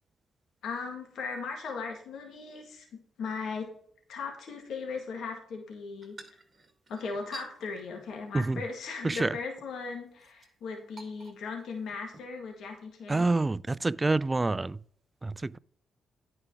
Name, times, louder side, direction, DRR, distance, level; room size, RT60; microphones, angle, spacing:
voice 1, 0.6-2.9 3.2-3.7 4.1-6.2 6.9-13.3, left 4 dB, 75° left, 1.8 m, -38 dB
sound 1, 6.0-7.5 8.1-8.4 8.7-8.8 9.1-9.7 10.2-10.5 11.0-11.6 11.9-12.2, right 4 dB, 40° right, 1.7 m, -50 dB
voice 2, 9.0-9.4 13.1-14.8 15.2-15.6, right 3 dB, 25° right, 0.3 m, -27 dB
9.9 x 5.0 x 4.8 m
supercardioid pair, 55°, 0 cm